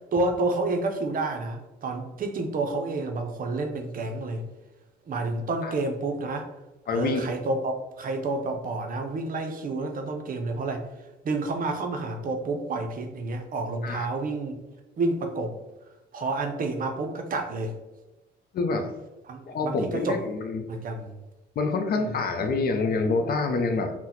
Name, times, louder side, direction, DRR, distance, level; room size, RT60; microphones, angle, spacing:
voice 1, 0.1-4.4 5.1-6.5 6.9-10.8 11.2-14.6 15.0-15.6 16.1-17.7 19.3-20.2 20.7-21.2 22.0-22.2, right 2 dB, 45° right, 4 dB, 0.6 m, -29 dB
voice 2, 6.9-7.3 13.8-14.1 18.5-18.9 19.5-20.6 21.6-23.9, left 3 dB, 50° left, 6 dB, 0.5 m, -26 dB
2.8 x 2.1 x 3.9 m, 1.0 s
cardioid pair, 90°, 20 cm